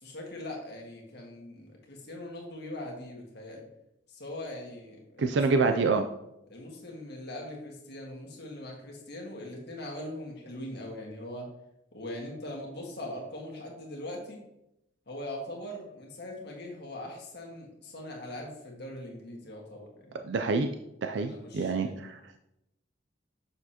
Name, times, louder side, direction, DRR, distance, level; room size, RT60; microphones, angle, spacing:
voice 1, 0.0-3.6 4.1-5.8 6.5-11.5 11.9-14.4 15.1-20.2 21.2-22.0, left 1 dB, 60° left, 0 dB, 1.7 m, -41 dB
voice 2, 5.2-6.0 20.2-20.7 21.0-22.2, right 4 dB, 65° right, 6 dB, 0.4 m, -26 dB
7.0 x 6.4 x 2.9 m, 0.85 s
head